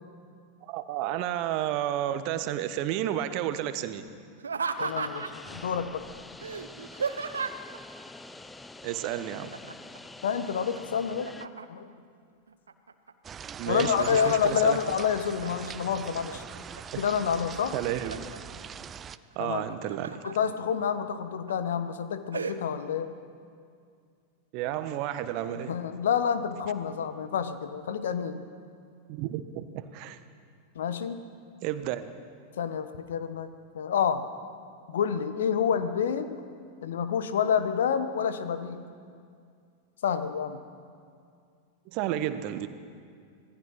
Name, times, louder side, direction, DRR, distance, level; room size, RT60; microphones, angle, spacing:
voice 1, 0.6-4.0 8.8-9.5 13.6-14.8 16.9-17.0 17.7-18.3 19.3-20.2 24.5-25.8 29.1-30.2 31.6-32.1 41.9-42.7, right 12 dB, 45° right, 11 dB, 1.3 m, -31 dB
Laughter, 4.4-5.5 6.4-7.8 9.5-10.0 10.3-11.9 12.5-13.1 13.5-14.8 15.2-15.8 16.3-17.1 17.5-18.4 19.5-20.3 20.9-21.0 21.5-21.8 22.3-22.6, right 5 dB, 70° right, 1.0 m, -35 dB
voice 2, 4.8-6.0 10.2-11.3 11.7-11.9 13.6-16.4 17.0-17.8 19.4-19.6 20.2-23.1 25.7-28.4 30.7-31.2 32.6-33.5 33.7-34.2 34.9-36.3 36.8-38.8 40.0-40.6, left 7 dB, 60° left, 11 dB, 1.3 m, -28 dB
sound 1, 4.8-11.5, left 2 dB, 10° left, 0.8 m, -46 dB
sound 2, 13.2-19.2, right 7 dB, 25° right, 0.6 m, -42 dB
26.0 x 18.5 x 5.9 m, 2.3 s
figure-of-eight pair, 90°, 0 cm